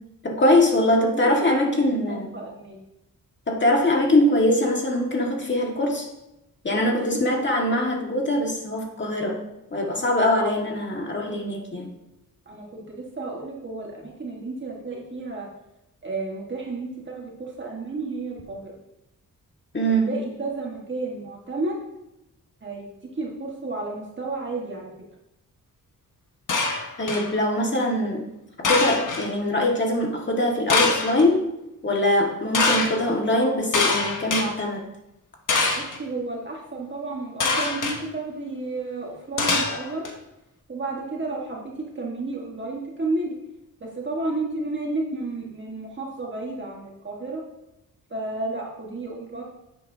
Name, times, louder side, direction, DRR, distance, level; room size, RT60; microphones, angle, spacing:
voice 1, 0.2-2.3 3.5-6.1 6.6-9.4 9.7-11.9 19.7-20.1 27.0-28.2 28.6-31.5 31.8-34.8, left 1 dB, 35° left, 0 dB, 1.7 m, -22 dB
voice 2, 1.1-2.8 7.1-7.4 12.4-15.5 16.0-18.7 20.0-21.8 22.6-24.9 35.7-40.1 40.7-43.3 43.8-47.4 48.1-49.4, right 3 dB, 35° right, -2 dB, 1.5 m, -32 dB
sound 1, 26.5-27.3 28.6-29.3 30.7-31.2 32.5-32.9 33.7-34.5 35.5-36.0 37.4-38.0 39.4-40.1, left 3 dB, 70° left, 1.3 m, -23 dB
9.7 x 7.7 x 2.7 m, 0.89 s
wide cardioid pair, 95°, 33 cm